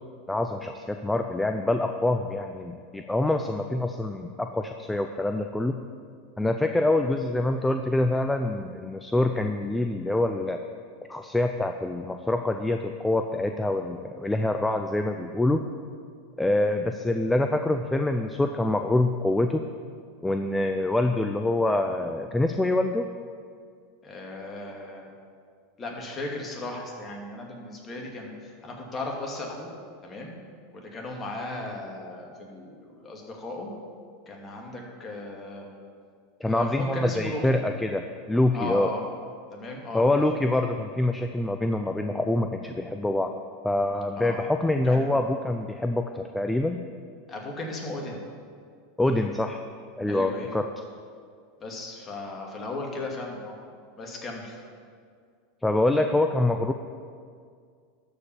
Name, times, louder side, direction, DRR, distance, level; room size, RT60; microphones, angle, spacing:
voice 1, 0.3-5.8 6.4-10.6 11.1-15.6 16.4-19.6 20.2-23.1 36.4-38.9 39.9-43.3 43.6-46.8 49.0-49.6 50.0-50.6 55.6-56.7, left 2 dB, 10° left, 6 dB, 0.5 m, -25 dB
voice 2, 24.0-25.1 25.8-29.7 30.0-30.3 30.7-33.7 34.3-35.7 36.4-37.6 38.5-39.0 39.5-40.1 44.1-44.4 44.8-45.2 47.3-48.2 50.1-50.5 51.6-53.6 54.0-54.6, left 2 dB, 30° left, 0 dB, 2.4 m, -36 dB
12.5 x 5.1 x 7.2 m, 2.1 s
hypercardioid pair, 90°, 0 cm